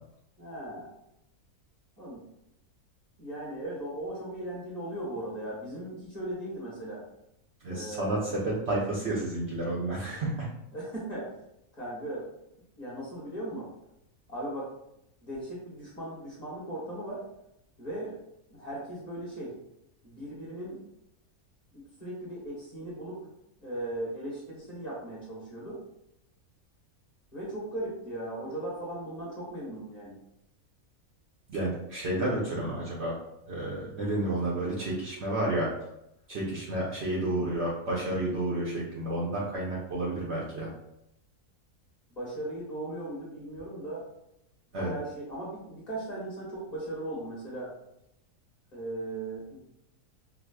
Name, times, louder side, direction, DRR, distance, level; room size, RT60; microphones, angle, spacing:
voice 1, 0.4-0.9 2.0-2.2 3.2-7.0 7.7-8.3 10.7-11.4 11.7-12.3 12.8-13.7 14.3-14.7 15.2-17.2 17.8-18.2 18.5-19.6 20.0-20.8 21.7-23.2 23.6-25.8 27.3-30.2 42.1-44.1 44.7-47.7 48.7-49.6, right 1 dB, 30° left, -7 dB, 1.0 m, -38 dB
voice 2, 7.6-10.5 31.5-33.2 33.5-35.7 36.3-40.7 44.7-44.9, right 1 dB, 60° right, -5 dB, 0.8 m, -31 dB
4.7 x 2.0 x 2.2 m, 0.82 s
omnidirectional pair, 1.6 m